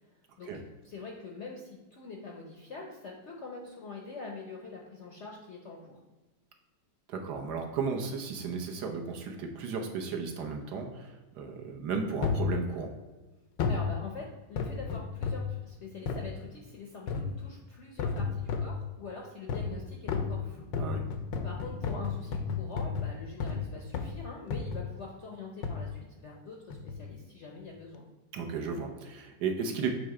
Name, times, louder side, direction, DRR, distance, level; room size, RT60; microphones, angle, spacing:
voice 1, 0.4-6.0 13.7-20.7 21.4-28.0, left 3 dB, 60° left, 0 dB, 0.7 m, -44 dB
voice 2, 7.1-12.9 20.8-21.0 28.3-29.9, right 5 dB, 65° right, 3 dB, 1.3 m, -34 dB
sound 1, 12.2-12.5 13.6-13.9 14.6-15.5 16.1-16.3 17.1-17.4 18.0-18.8 19.5-19.8 20.1-23.7 23.9-24.2 24.5-24.9 25.6-25.9 26.7-27.0 27.6-27.7, left 5 dB, 85° left, 1.4 m, -32 dB
6.7 x 3.2 x 4.7 m, 1.2 s
omnidirectional pair, 2.0 m